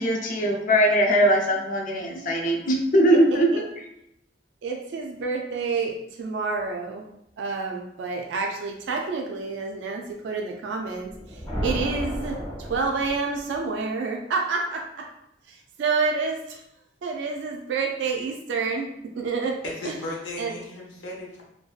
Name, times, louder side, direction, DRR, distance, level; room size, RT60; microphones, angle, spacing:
voice 1, 0.0-3.6, equal, 50° left, 1 dB, 0.4 m, -21 dB
voice 2, 3.3-3.6 4.6-7.1 7.4-15.1 15.5-16.6 17.0-18.9 19.1-19.6 19.8-20.0 20.4-20.6, right 4 dB, 70° right, 1 dB, 0.3 m, -29 dB
sound 1, 11.0-13.6, equal, 25° left, 0.8 m, -33 dB
voice 3, 19.6-21.4, left 2 dB, 85° left, -2 dB, 0.7 m, -35 dB
2.6 x 2.2 x 2.3 m, 0.79 s
head